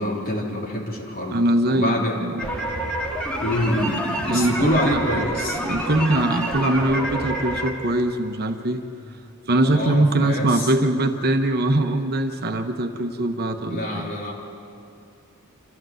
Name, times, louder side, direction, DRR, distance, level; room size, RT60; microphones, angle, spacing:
voice 1, 0.0-1.4 1.7-2.2 3.4-5.6 9.6-10.7 13.7-14.3, left 1 dB, 40° left, -2 dB, 3.5 m, -26 dB
voice 2, 1.3-2.3 4.3-5.2 5.7-8.8 9.5-14.1, right 1 dB, 45° right, 6 dB, 1.0 m, -22 dB
sound 1, 2.4-7.7, right 1 dB, 5° left, 2.3 m, -27 dB
26.5 x 14.0 x 7.9 m, 2.6 s
head